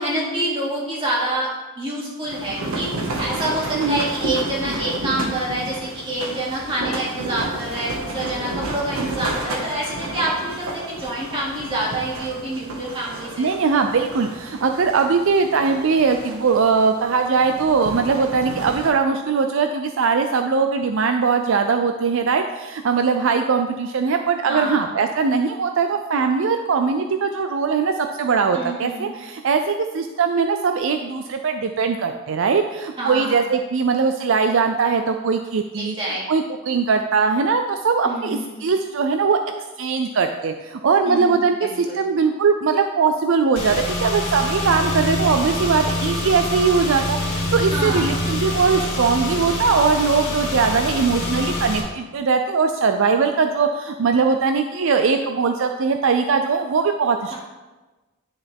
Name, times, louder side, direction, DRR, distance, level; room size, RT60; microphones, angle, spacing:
voice 1, 0.0-1.5 1.8-2.9 3.2-13.5 24.5-24.9 28.5-29.1 33.0-33.4 35.8-36.2 38.0-38.7 41.1-41.3 41.6-42.0 47.7-48.2, right 1 dB, 25° right, -6 dB, 2.6 m, -27 dB
sound 1, 2.2-18.9, right 2 dB, 80° right, 1.6 m, -31 dB
voice 2, 13.4-36.0 36.3-39.4 39.8-57.3, right 5 dB, 60° right, 6 dB, 0.4 m, -20 dB
Car / Engine, 43.6-51.8, left 1 dB, 65° left, 2.4 m, -25 dB
10.5 x 6.8 x 3.5 m, 1.2 s
head